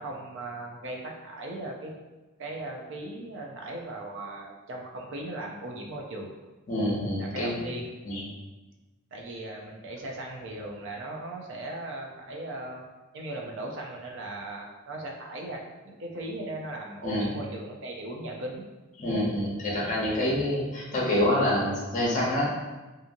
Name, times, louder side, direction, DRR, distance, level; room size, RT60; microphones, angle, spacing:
voice 1, 0.0-1.9 2.4-6.3 7.2-7.9 9.1-12.9 13.1-18.6, right 2 dB, 65° right, 0 dB, 0.5 m, -38 dB
voice 2, 6.7-7.6 8.0-8.2 17.0-17.3 19.0-22.5, left 1 dB, 40° left, -5 dB, 0.7 m, -26 dB
2.7 x 2.6 x 2.5 m, 1.1 s
head